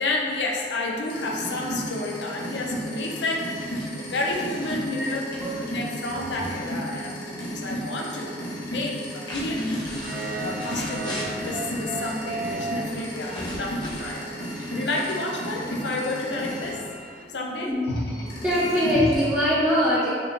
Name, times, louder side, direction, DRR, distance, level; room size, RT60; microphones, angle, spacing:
voice 1, 0.0-5.2 5.7-8.3 8.6-9.8 10.4-16.8 17.3-17.7, left 2 dB, 85° left, -1 dB, 0.6 m, -30 dB
sound 1, 1.0-16.7 17.8-19.3, equal, 60° left, 1.1 m, -33 dB
sound 2, 3.5-7.5 7.7-8.4 8.9-11.6 12.8-15.5, left 1 dB, 25° left, 0.8 m, -41 dB
sound 3, 9.9-17.2, right 2 dB, 50° right, 0.4 m, -36 dB
voice 2, 18.4-20.1, equal, 5° right, -11 dB, 0.6 m, -22 dB
5.8 x 3.3 x 2.7 m, 2.1 s
head